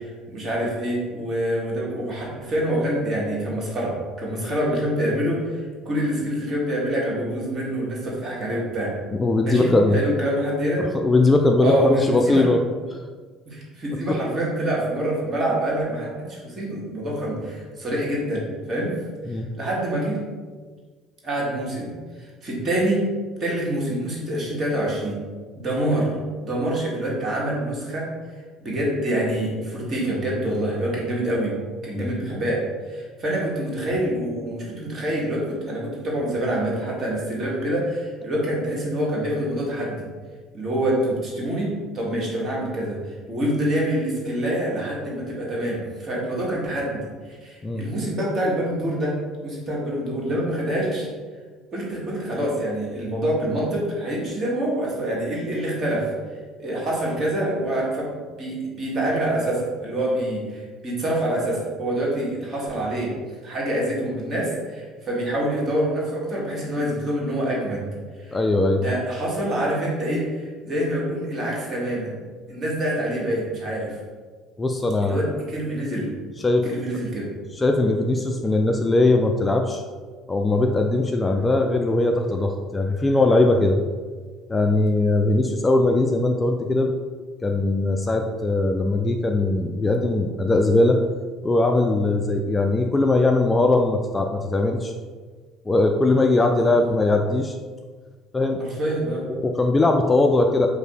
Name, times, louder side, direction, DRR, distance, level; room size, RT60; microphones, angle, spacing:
voice 1, 0.0-8.9 9.4-10.9 11.6-12.5 13.4-18.9 19.5-20.2 21.2-21.9 22.4-23.0 23.4-25.2 25.5-26.1 26.4-28.1 28.6-31.5 31.8-40.1 40.5-43.0 43.3-49.1 49.4-51.1 51.7-56.1 56.6-63.1 63.4-67.9 68.2-68.4 68.7-72.1 72.5-74.0 75.0-76.1 76.7-77.3 85.3-85.4 96.6-96.8 98.6-99.3, right 1 dB, 35° right, -4 dB, 1.5 m, -26 dB
voice 2, 9.1-10.0 10.8-12.6 12.9-13.0 19.3-19.5 32.0-32.1 47.6-47.8 68.3-68.8 74.6-75.2 76.4-76.7 77.5-79.8 80.3-83.8 84.5-86.9 87.4-91.0 91.4-94.9 95.7-97.6 98.3-98.6 99.3-100.7, left 2 dB, 20° left, 3 dB, 0.3 m, -20 dB
4.8 x 2.1 x 4.5 m, 1.5 s
figure-of-eight pair, 60°, 0 cm